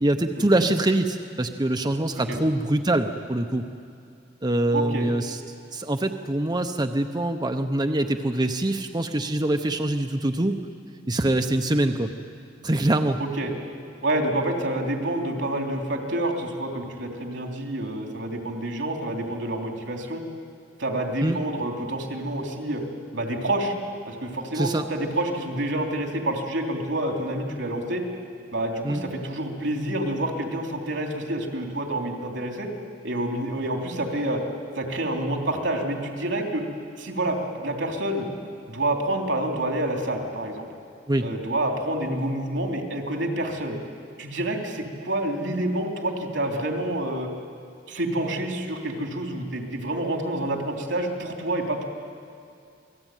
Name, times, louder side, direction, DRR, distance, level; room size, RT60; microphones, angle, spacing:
voice 1, 0.0-3.6 4.4-5.4 5.7-10.6 11.1-12.1 12.6-13.2 21.2-21.4 24.5-24.9 28.8-29.0 41.1-41.2, right 1 dB, 25° right, 6 dB, 0.9 m, -24 dB
voice 2, 4.7-5.1 13.2-13.5 14.0-20.2 20.8-22.8 23.1-23.7 24.1-28.0 28.5-32.7 33.0-34.4 34.8-36.6 37.0-38.3 38.7-40.7 41.2-43.8 44.2-47.3 47.9-51.9, right 1 dB, 80° right, 2 dB, 3.4 m, -28 dB
28.0 x 19.5 x 9.2 m, 2.4 s
head